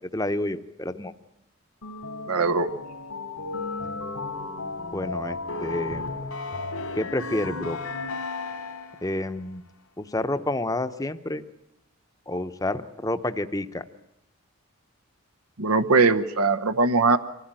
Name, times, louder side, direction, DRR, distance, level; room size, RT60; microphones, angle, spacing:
voice 1, 0.1-1.1 4.9-6.1 6.9-7.8 9.0-9.6 10.0-11.4 12.3-13.8, left 1 dB, 15° left, 9 dB, 0.8 m, -29 dB
sound 1, 1.8-9.1, left 3 dB, 85° left, 2.8 m, -34 dB
voice 2, 2.3-2.7 15.6-17.2, right 4 dB, 85° right, 11 dB, 0.9 m, -20 dB
24.5 x 16.0 x 8.9 m, 0.82 s
head